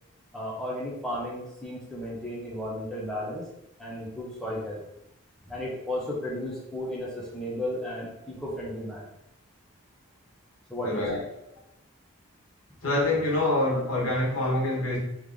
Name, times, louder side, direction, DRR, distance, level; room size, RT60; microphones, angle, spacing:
voice 1, 0.3-3.5 3.8-4.8 5.5-9.1 10.7-11.1, left 1 dB, ahead, -6 dB, 0.8 m, -34 dB
voice 2, 10.8-11.2 12.8-15.0, left 1 dB, 85° left, -4 dB, 1.5 m, -25 dB
3.4 x 3.1 x 3.7 m, 0.87 s
head